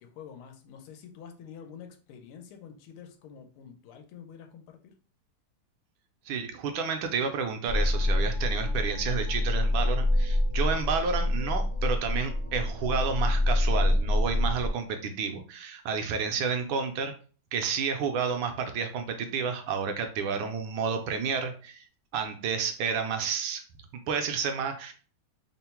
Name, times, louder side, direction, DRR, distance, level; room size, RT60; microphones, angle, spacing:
voice 1, 0.0-4.9, left 7 dB, 90° left, 5 dB, 1.5 m, -47 dB
voice 2, 6.3-17.1 17.5-21.9 22.1-23.6 24.1-24.9, right 6 dB, 75° right, 6 dB, 1.3 m, -30 dB
sound 1, 7.7-14.7, left 1 dB, 45° left, 0.6 m, -26 dB
3.7 x 2.0 x 4.3 m, 0.39 s
omnidirectional pair, 2.3 m